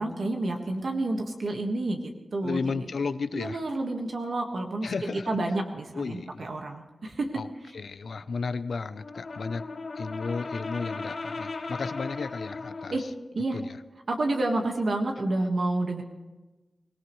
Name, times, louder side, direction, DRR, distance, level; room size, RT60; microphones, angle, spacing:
voice 1, 0.0-2.8 3.3-7.3 12.9-13.0 13.3-13.6 14.1-16.0, right 2 dB, 75° right, 3 dB, 1.6 m, -29 dB
voice 2, 2.4-3.6 4.8-5.4 5.9-6.4 7.4-7.5 7.7-9.7 10.0-13.1 13.5-13.8, left 4 dB, 85° left, 12 dB, 0.6 m, -33 dB
Brass instrument, 8.9-13.1, left 3 dB, 65° left, 1.1 m, -37 dB
24.0 x 17.5 x 3.2 m, 1.1 s
wide cardioid pair, 95°, 0 cm